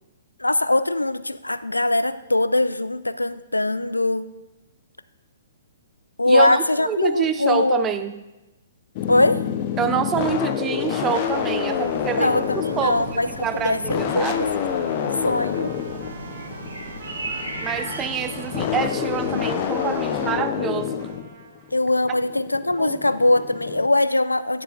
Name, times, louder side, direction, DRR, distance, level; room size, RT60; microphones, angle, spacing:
voice 1, 0.4-4.3 6.2-7.9 9.1-9.4 12.2-13.3 13.5-14.7 15.0-15.7 21.7-24.6, left 2 dB, 80° left, 15 dB, 0.3 m, -21 dB
voice 2, 6.2-8.2 9.8-14.5 17.6-21.0 22.8-23.0, right 8 dB, 20° right, 9 dB, 0.5 m, -27 dB
sound 1, 9.0-23.9, left 9 dB, 35° left, 0.6 m, -28 dB
sound 2, 11.0-20.3, right 1 dB, 75° right, 2.1 m, -35 dB
Trumpet, 14.0-21.7, right 6 dB, 40° right, 0.8 m, -47 dB
11.0 x 9.9 x 2.4 m, 1.1 s
figure-of-eight pair, 120°, 0 cm